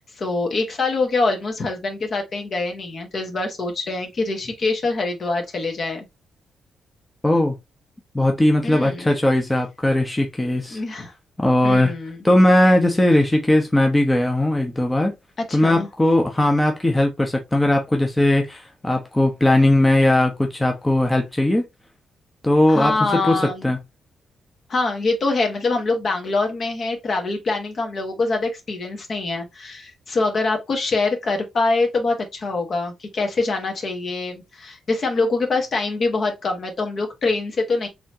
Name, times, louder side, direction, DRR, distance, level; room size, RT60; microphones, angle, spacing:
voice 1, 0.0-6.1 8.6-9.1 10.7-11.1 11.6-12.2 15.5-15.9 22.7-23.7 24.7-37.9, left 3 dB, 50° left, 1.3 m, -24 dB
voice 2, 7.2-7.6 8.1-10.8 11.4-11.9 12.2-15.1 15.5-21.6 22.4-22.9 23.2-23.8, left 1 dB, 10° left, 0.8 m, -18 dB
4.0 x 3.0 x 2.8 m
cardioid pair, 95°, 0 cm